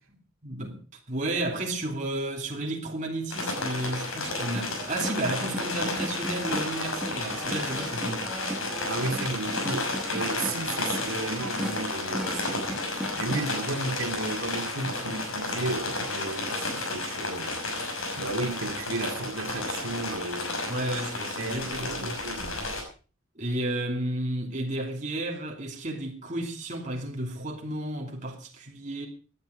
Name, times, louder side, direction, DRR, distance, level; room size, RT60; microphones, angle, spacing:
voice 1, 0.4-0.8 1.1-8.3 10.4-10.5 10.8-11.0 20.7-22.2 23.4-29.1, right 1 dB, 35° right, 2.8 m, -32 dB
sound 1, 3.3-22.8, left 2 dB, 75° left, 6.3 m, -32 dB
sound 2, 4.1-14.5 14.9-17.3 17.9-18.0 18.3-18.5 19.1-20.0 20.4-20.5, equal, 5° right, 1.4 m, -39 dB
voice 2, 8.8-17.6 18.2-20.6 21.4-22.6, right 2 dB, 85° right, 2.4 m, -34 dB
18.0 x 11.0 x 5.1 m
head